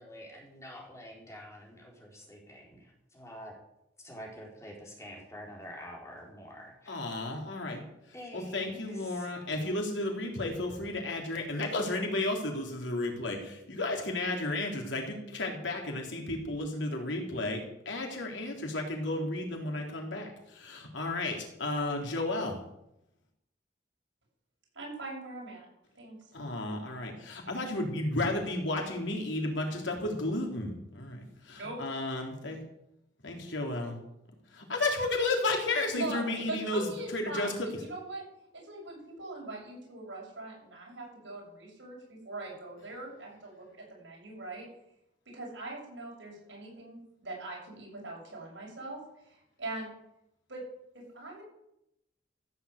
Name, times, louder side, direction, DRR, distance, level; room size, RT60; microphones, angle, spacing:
voice 1, 0.0-3.5 4.0-7.0 8.1-9.3, equal, 15° left, -1 dB, 4.0 m, -47 dB
voice 2, 6.9-7.8 8.3-22.5 26.3-32.6 33.2-34.0 34.5-37.7, left 2 dB, 80° left, 1 dB, 3.6 m, -33 dB
voice 3, 24.7-25.7 26.0-26.2 31.5-31.8 35.9-38.2 38.5-43.6 43.9-44.7 45.3-49.0 49.3-49.9 50.5-50.6 50.9-51.4, right 2 dB, 80° right, -2 dB, 7.7 m, -41 dB
15.0 x 7.9 x 8.3 m, 0.83 s
head